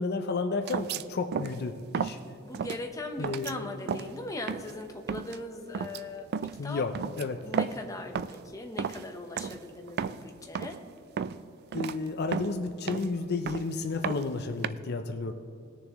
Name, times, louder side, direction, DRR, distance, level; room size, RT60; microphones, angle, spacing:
voice 1, 0.0-2.2 3.2-3.7 6.6-7.4 11.7-15.3, left 3 dB, 55° left, 6 dB, 0.5 m, -32 dB
sound 1, 0.7-1.0 1.3-1.6 1.9-2.2 2.5-2.8 3.2-3.5 3.9-4.1 4.5-4.8 5.1-5.4 5.7-6.0 6.3-6.6 6.9-7.9 8.1-8.5 8.8-9.1 9.4-9.6 9.9-10.3 10.5-10.8 11.2-11.4 11.7-12.0 12.3-13.2 13.5-13.7 14.0-14.7, right 6 dB, 50° right, 0.3 m, -33 dB
voice 2, 2.4-6.8 7.4-10.8, left 2 dB, 15° left, 3 dB, 0.9 m, -40 dB
20.0 x 6.8 x 3.0 m, 2.6 s
head